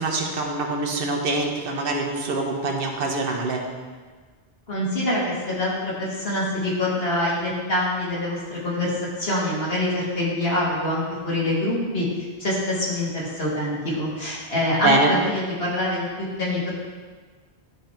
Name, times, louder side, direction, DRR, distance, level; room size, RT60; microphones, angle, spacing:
voice 1, 0.0-3.6 14.8-15.1, right 2 dB, 65° right, 1 dB, 1.2 m, -24 dB
voice 2, 4.7-8.9 9.2-16.1 16.4-16.7, left 1 dB, 70° left, -6 dB, 2.1 m, -25 dB
11.0 x 3.9 x 4.4 m, 1.4 s
omnidirectional pair, 1.0 m